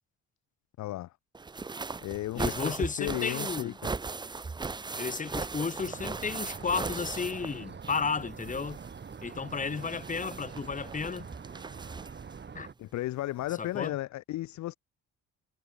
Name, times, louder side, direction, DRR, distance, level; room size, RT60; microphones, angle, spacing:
voice 1, 0.8-1.1 2.0-3.9 12.8-14.8, left 15 dB, 70° left, 0.6 m, -34 dB
sound 1, 1.3-8.1 8.4-12.3 13.4-13.5 13.8-13.9, right 4 dB, 15° right, 0.5 m, -38 dB
voice 2, 2.3-3.8 5.0-8.8 9.2-11.3 12.5-12.7 13.6-14.0, left 5 dB, 25° left, 1.2 m, -33 dB
sound 2, 5.8-12.7, right 6 dB, 35° right, 1.9 m, -45 dB
cardioid pair, 90°, 30 cm